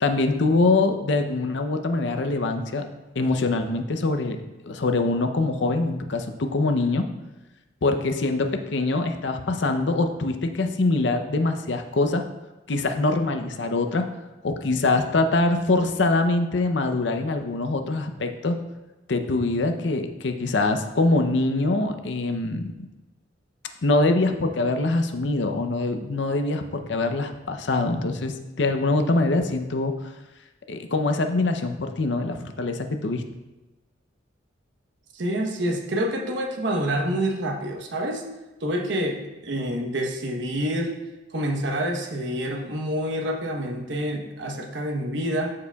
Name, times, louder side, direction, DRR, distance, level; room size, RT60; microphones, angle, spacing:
voice 1, 0.0-2.8 3.2-4.4 4.6-7.0 7.8-12.2 12.7-14.1 14.4-18.6 19.1-22.7 23.8-29.9 30.7-33.2, left 2 dB, 65° left, 6 dB, 0.6 m, -24 dB
voice 2, 35.1-38.2 38.6-40.9 41.3-45.5, equal, 65° right, 2 dB, 1.0 m, -27 dB
13.5 x 4.8 x 2.3 m, 1.1 s
head